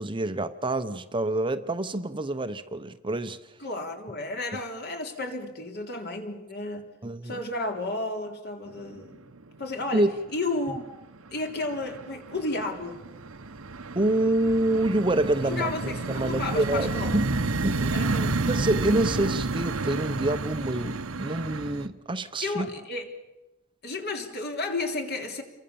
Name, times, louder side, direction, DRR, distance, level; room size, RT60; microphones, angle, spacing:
voice 1, 0.0-3.4 7.0-7.3 9.9-10.1 13.9-17.2 17.6-18.0 18.4-22.7, right 1 dB, 25° right, 0.9 m, -27 dB
voice 2, 3.6-6.9 7.2-9.2 9.6-10.8 11.3-13.0 15.4-17.2 17.8-18.5 22.4-23.1 23.8-25.4, left 2 dB, 50° left, 3.6 m, -32 dB
sound 1, 8.8-9.3 9.6-10.4 10.7-21.9, right 3 dB, 90° right, 1.2 m, -30 dB
28.5 x 23.5 x 7.1 m
head